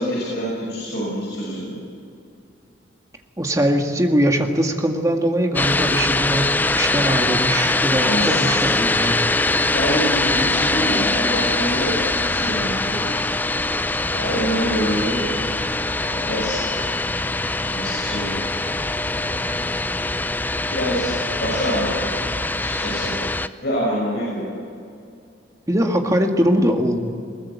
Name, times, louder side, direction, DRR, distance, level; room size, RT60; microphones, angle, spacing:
voice 1, 0.0-1.8 8.0-8.6 9.7-13.2 14.1-15.5 16.0-16.6 17.6-18.5 19.1-19.6 20.7-21.1 21.4-22.0 22.5-23.1 23.6-24.5, equal, 60° left, -5 dB, 6.0 m, -26 dB
voice 2, 3.4-9.2 25.7-27.0, equal, 20° right, 3 dB, 1.8 m, -21 dB
sound 1, 5.6-23.5, left 2 dB, 10° left, 0.4 m, -22 dB
21.5 x 19.0 x 8.3 m, 2.4 s
head